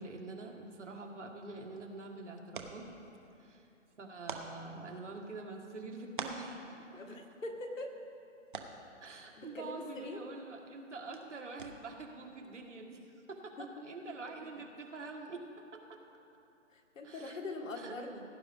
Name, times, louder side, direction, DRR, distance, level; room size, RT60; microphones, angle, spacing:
voice 1, 0.0-2.8 3.4-3.7 4.0-7.2 9.0-15.4 17.0-17.4 17.8-17.9, right 3 dB, 65° right, 1 dB, 1.9 m, -46 dB
sound 1, 1.4-12.1, right 4 dB, 40° right, 0.9 m, -50 dB
voice 2, 7.0-8.0 9.4-10.2 13.6-13.7 16.7-18.2, left 2 dB, 85° left, 3 dB, 1.8 m, -42 dB
17.0 x 9.6 x 3.6 m, 2.7 s
hypercardioid pair, 175°, 38 cm